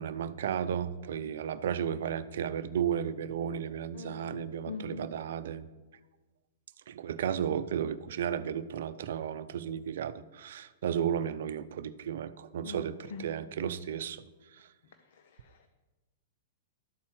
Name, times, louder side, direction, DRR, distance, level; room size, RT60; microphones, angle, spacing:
voice 1, 0.0-5.7 6.9-14.2 14.6-14.7, right 8 dB, 70° right, 13 dB, 0.5 m, -34 dB
voice 2, 3.9-5.1 12.6-13.3 14.9-15.7, left 5 dB, 70° left, 9 dB, 0.6 m, -44 dB
12.5 x 4.3 x 6.4 m, 1.2 s
hypercardioid pair, 120°, 0 cm